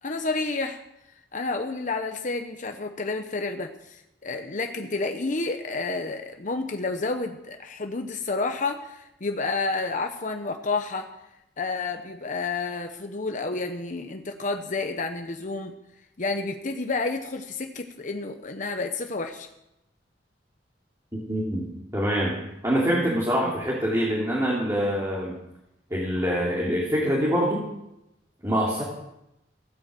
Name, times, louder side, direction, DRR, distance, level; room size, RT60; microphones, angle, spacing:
voice 1, 0.0-0.8 1.3-11.1 11.6-15.7 16.2-19.5, left 3 dB, 45° left, 5 dB, 0.9 m, -30 dB
voice 2, 21.1-22.4 22.6-25.3 25.9-27.7 28.4-28.8, equal, 15° right, -5 dB, 2.9 m, -25 dB
16.0 x 8.8 x 7.6 m, 0.87 s
head